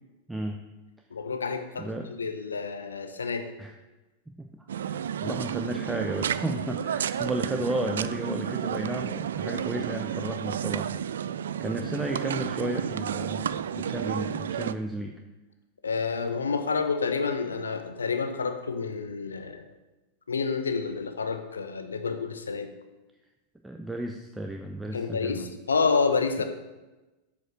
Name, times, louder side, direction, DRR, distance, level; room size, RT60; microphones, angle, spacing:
voice 1, 1.1-3.5 15.8-19.6 20.3-22.7 24.9-26.4, left 5 dB, 80° left, 8 dB, 0.8 m, -29 dB
voice 2, 1.8-2.1 3.6-3.7 4.4-10.9 11.6-15.1 23.6-25.5, right 1 dB, 5° right, 3 dB, 0.6 m, -33 dB
sound 1, 4.7-14.7, right 9 dB, 75° right, 0.3 m, -31 dB
7.8 x 5.3 x 6.4 m, 1.1 s
figure-of-eight pair, 90°, 0 cm